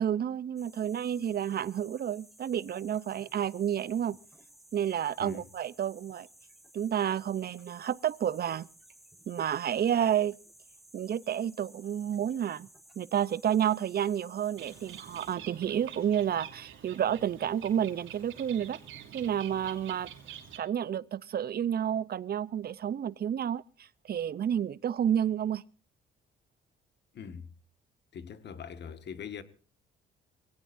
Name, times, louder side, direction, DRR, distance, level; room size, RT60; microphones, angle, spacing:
voice 1, 0.0-4.2 4.7-6.3 6.7-8.7 9.3-10.4 10.9-12.7 13.0-18.8 19.1-20.1 20.6-23.6 24.1-25.6, right 9 dB, 50° right, 0.7 m, -30 dB
sound 1, 0.6-15.4, right 1 dB, ahead, 4.7 m, -57 dB
Bird, 14.6-20.6, right 9 dB, 85° right, 2.9 m, -47 dB
voice 2, 27.1-27.5 28.1-29.4, left 7 dB, 60° left, 1.8 m, -42 dB
24.5 x 18.0 x 2.7 m
cardioid pair, 90°, 20 cm